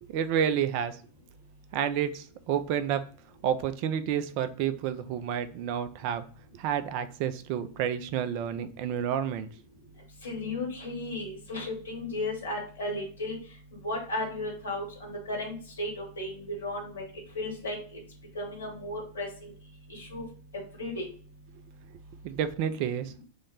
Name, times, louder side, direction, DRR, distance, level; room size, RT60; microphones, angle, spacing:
voice 1, 0.1-1.0 1.7-3.0 3.4-6.2 6.5-9.5 22.2-23.1, right 9 dB, 45° right, 11 dB, 0.3 m, -30 dB
voice 2, 10.2-13.4 13.8-17.0 17.3-17.8 18.3-19.5 19.9-20.2 20.8-21.1, left 1 dB, 65° left, 0 dB, 1.1 m, -34 dB
3.1 x 2.1 x 3.8 m, 0.44 s
figure-of-eight pair, 90°, 0 cm